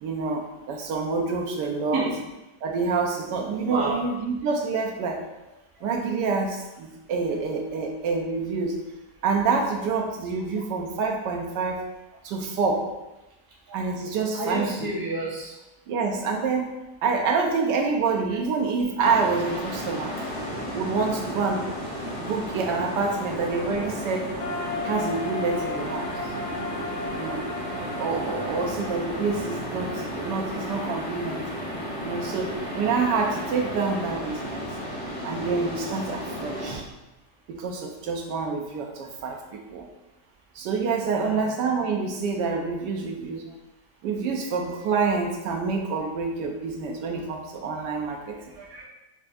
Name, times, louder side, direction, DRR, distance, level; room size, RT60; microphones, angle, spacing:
voice 1, 0.0-2.0 2.6-5.2 5.8-8.8 9.2-11.8 12.2-12.9 13.7-14.9 15.9-16.7 17.0-20.1 20.7-21.7 22.3-24.3 24.8-26.1 27.1-27.4 28.0-31.4 32.0-34.7 35.2-36.8 37.5-39.9 40.5-43.5 44.0-48.4, right 4 dB, 85° right, 2 dB, 1.2 m, -27 dB
voice 2, 3.7-4.0 13.7-13.8 14.3-15.5 20.1-20.2 41.1-41.4 48.6-48.8, right 2 dB, 20° right, -6 dB, 0.6 m, -30 dB
sound 1, 19.0-36.8, equal, 40° left, 0.8 m, -33 dB
sound 2, 24.4-30.3, left 3 dB, 75° left, 1.1 m, -36 dB
5.4 x 2.5 x 2.3 m, 0.99 s
omnidirectional pair, 1.8 m